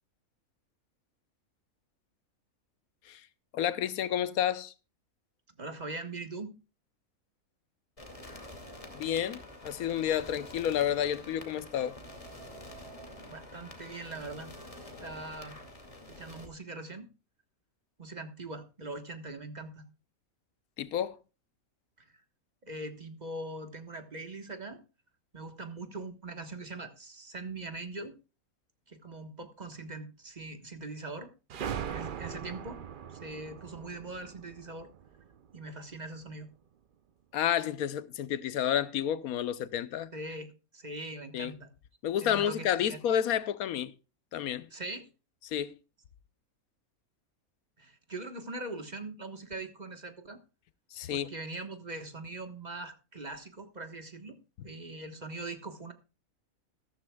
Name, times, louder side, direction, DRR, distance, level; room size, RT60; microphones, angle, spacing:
voice 1, 3.5-4.7 8.9-12.0 20.8-21.2 37.3-40.1 41.3-41.5 42.0-43.9 44.3-44.7 45.4-45.7 50.9-51.3, left 10 dB, 85° left, 1.2 m, -30 dB
voice 2, 5.6-6.5 13.2-14.5 15.0-15.6 16.1-17.1 18.0-19.8 22.0-22.2 22.6-24.8 25.3-28.2 28.9-31.3 31.9-32.8 33.1-34.9 35.5-36.5 40.1-41.7 42.2-43.0 44.7-45.1 47.8-50.4 51.1-54.4 54.6-55.9, right 2 dB, 30° right, 1.4 m, -42 dB
sound 1, 8.0-16.5, left 1 dB, 25° left, 2.4 m, -47 dB
sound 2, 31.5-36.0, right 8 dB, 55° right, 0.6 m, -40 dB
14.0 x 14.0 x 2.3 m
omnidirectional pair, 1.5 m